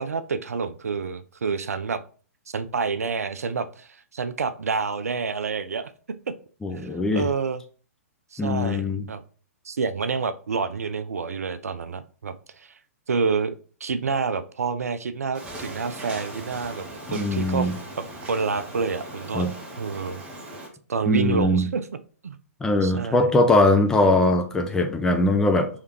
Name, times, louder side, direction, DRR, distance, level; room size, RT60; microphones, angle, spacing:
voice 1, 0.0-2.0 2.5-5.9 6.7-7.6 8.3-9.2 9.7-12.7 13.1-13.6 13.8-16.8 17.1-17.7 18.0-20.2 20.9-21.8 22.2-22.4 22.8-23.3, right 5 dB, 70° right, 0.4 m, -28 dB
voice 2, 6.6-7.3 8.4-9.0 17.1-17.7 19.3-19.5 21.1-21.7 22.6-25.7, left 2 dB, 5° left, 0.4 m, -21 dB
sound 1, 15.3-20.7, right 1 dB, 15° right, 0.9 m, -39 dB
4.9 x 3.2 x 2.9 m
figure-of-eight pair, 125°, 9 cm